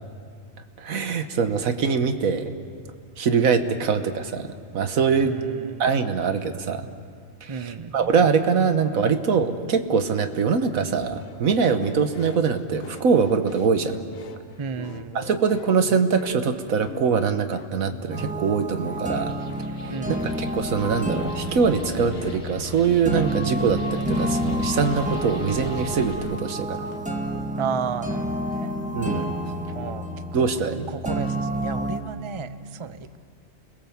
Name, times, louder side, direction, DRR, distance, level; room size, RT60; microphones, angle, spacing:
voice 1, 0.8-2.5 3.2-4.5 4.7-5.3 5.8-6.9 7.4-13.9 15.1-19.3 19.8-19.9 20.2-26.9 28.9-29.3 30.3-30.9, right 5 dB, 85° right, 8 dB, 1.6 m, -23 dB
voice 2, 5.2-5.9 7.5-8.1 14.6-15.3 19.9-20.6 27.5-28.7 29.7-30.1 30.9-33.2, right 6 dB, 30° right, 12 dB, 0.6 m, -33 dB
sound 1, 11.1-27.2, left 5 dB, 80° left, 1.5 m, -43 dB
sound 2, 18.1-32.0, right 1 dB, 5° right, 1.6 m, -29 dB
sound 3, 19.0-26.1, left 3 dB, 55° left, 3.5 m, -45 dB
30.0 x 21.0 x 7.3 m, 2.2 s
omnidirectional pair, 1.4 m